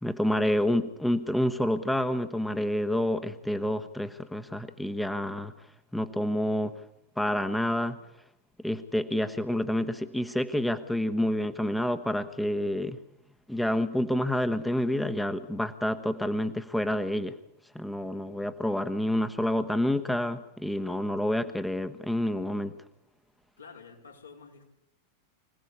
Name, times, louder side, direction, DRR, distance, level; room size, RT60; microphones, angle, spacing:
voice 1, 0.0-5.5 5.9-6.7 7.2-8.0 8.6-13.0 13.5-17.3 17.7-22.7, left 1 dB, 5° left, 9 dB, 1.2 m, -28 dB
voice 2, 23.6-24.6, left 5 dB, 80° left, -1 dB, 4.8 m, -49 dB
25.5 x 17.0 x 8.4 m, 0.80 s
figure-of-eight pair, 90°, 0 cm